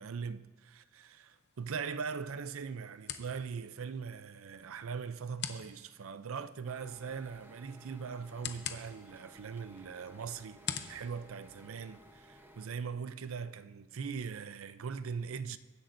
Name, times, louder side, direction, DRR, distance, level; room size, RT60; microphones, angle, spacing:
voice 1, 0.0-15.6, right 6 dB, 75° right, 0.5 m, -41 dB
sound 1, 1.3-12.3, left 8 dB, 55° left, 0.7 m, -47 dB
sound 2, 6.7-12.7, equal, 10° right, 0.8 m, -58 dB
22.5 x 10.5 x 2.6 m
head